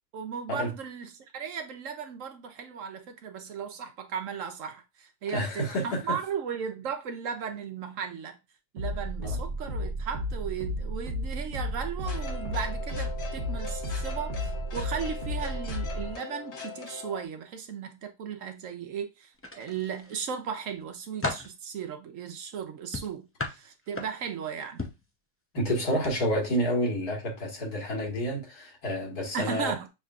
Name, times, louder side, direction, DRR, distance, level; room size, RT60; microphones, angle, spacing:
voice 1, 0.1-8.4 8.7-24.8 29.3-29.9, right 7 dB, 65° right, 1.0 m, -36 dB
voice 2, 5.3-6.0 9.2-9.4 25.5-29.7, equal, 85° left, 2.2 m, -29 dB
sound 1, 8.8-16.1, equal, 35° right, 1.0 m, -33 dB
sound 2, 12.0-17.2, left 6 dB, 50° left, 1.1 m, -41 dB
sound 3, 19.4-20.2 20.7-21.6 22.9-24.4 24.8-25.1 25.9-26.1 26.5-26.7, left 2 dB, 20° left, 0.3 m, -35 dB
6.4 x 3.2 x 2.4 m
omnidirectional pair, 1.6 m